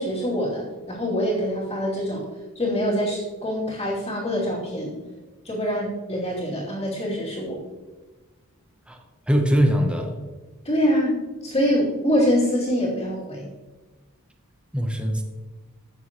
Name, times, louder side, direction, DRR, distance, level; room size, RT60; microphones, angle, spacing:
voice 1, 0.0-2.2 2.5-4.9 5.4-7.6 10.6-13.5, equal, 25° left, -8 dB, 2.8 m, -24 dB
voice 2, 9.3-10.2 14.7-15.2, equal, 5° right, 3 dB, 0.9 m, -21 dB
15.5 x 6.8 x 3.1 m, 1.2 s
head